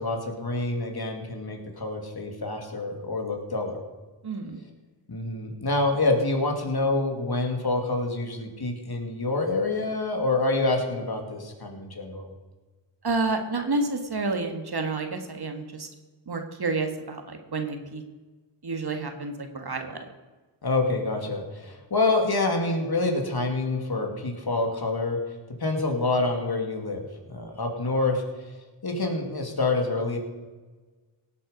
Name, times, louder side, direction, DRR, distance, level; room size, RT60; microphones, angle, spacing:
voice 1, 0.0-3.8 5.1-12.3 20.6-25.2 25.6-27.0 27.3-28.2 28.8-30.2, left 2 dB, 50° left, 3 dB, 2.6 m, -27 dB
voice 2, 4.2-4.6 13.0-15.9 16.3-18.0 18.6-20.1, right 3 dB, 55° right, 5 dB, 1.6 m, -29 dB
17.5 x 7.7 x 5.2 m, 1.3 s
cardioid pair, 55°, 46 cm